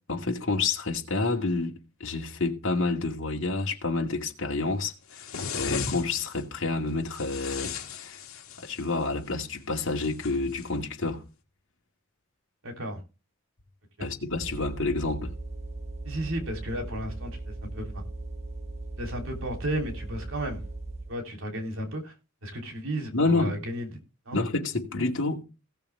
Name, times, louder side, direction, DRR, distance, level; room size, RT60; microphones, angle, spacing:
voice 1, 0.1-1.7 2.0-5.3 5.5-8.2 8.6-11.2 14.0-15.3 23.1-23.6 24.3-25.4, left 3 dB, 65° left, 2.3 m, -29 dB
sound 1, 5.1-6.4 7.1-8.9 10.0-10.7, left 5 dB, 85° left, 1.8 m, -36 dB
voice 2, 12.6-13.0 14.0-14.1 16.1-17.9 19.0-20.6 21.1-22.1 22.4-23.9 24.3-24.4, right 1 dB, 70° right, 3.5 m, -33 dB
sound 2, 14.3-21.2, right 2 dB, 30° right, 0.9 m, -38 dB
16.5 x 6.8 x 3.5 m
head